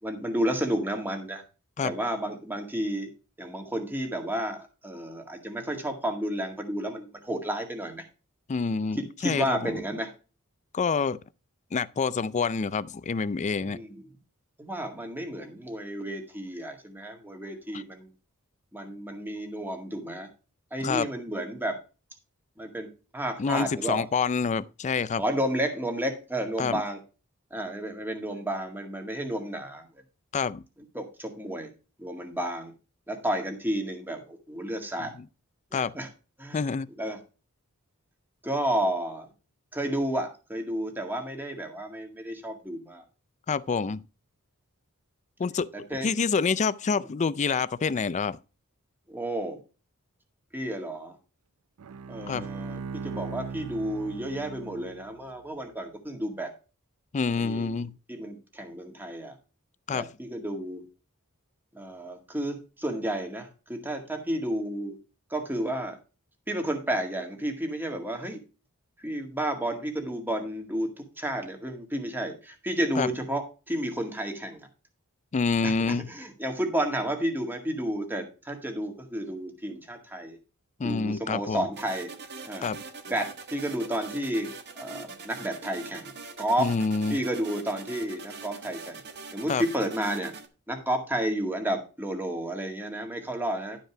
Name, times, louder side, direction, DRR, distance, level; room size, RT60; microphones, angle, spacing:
voice 1, 0.0-1.4 1.8-3.1 3.4-8.0 8.7-10.1 13.6-14.1 14.6-18.1 18.7-20.3 20.7-21.8 22.6-22.9 23.1-24.1 25.2-27.0 27.5-29.8 30.9-31.7 32.0-32.7 33.1-35.1 35.7-36.1 36.4-36.6 37.0-37.2 38.4-39.3 39.7-43.0 45.9-46.1 47.0-47.1 49.1-49.6 50.5-51.2 52.1-56.5 57.4-57.8 58.1-59.4 59.9-60.8 61.7-65.0 65.3-66.0 66.5-68.4 69.0-73.4 73.7-74.7 75.6-80.4 80.8-82.1 82.4-82.7 83.1-86.1 86.4-86.7 87.1-89.0 89.3-90.3 90.7-93.8, right 1 dB, 10° right, 1.9 m, -31 dB
voice 2, 8.5-9.7 10.7-11.2 11.7-13.8 20.8-21.1 23.4-25.2 26.6-26.8 30.3-30.6 35.2-35.3 35.7-35.9 36.5-36.9 43.5-44.0 45.4-45.7 46.0-48.4 52.3-52.5 57.1-57.9 59.9-60.1 73.0-73.1 75.3-76.1 80.8-81.7 82.6-82.8 86.6-87.2 89.5-89.6, left 5 dB, 30° left, 0.4 m, -27 dB
Bowed string instrument, 51.8-55.3, right 5 dB, 75° right, 0.4 m, -39 dB
sound 1, 81.7-90.5, right 4 dB, 50° right, 1.3 m, -43 dB
12.0 x 5.3 x 5.0 m
head